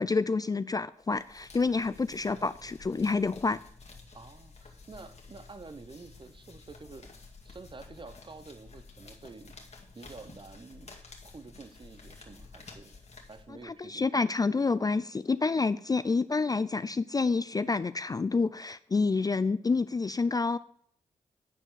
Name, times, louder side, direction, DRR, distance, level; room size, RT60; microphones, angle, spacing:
voice 1, 0.0-3.6 13.6-20.6, left 4 dB, 25° left, 15 dB, 0.4 m, -28 dB
sound 1, 1.0-13.9, left 3 dB, 50° left, 2.0 m, -52 dB
voice 2, 4.1-7.1 7.4-9.6 9.9-11.0 11.2-13.0 13.3-14.0, right 3 dB, 35° right, 12 dB, 0.9 m, -49 dB
9.4 x 4.5 x 6.9 m, 0.63 s
cardioid pair, 55°, 14 cm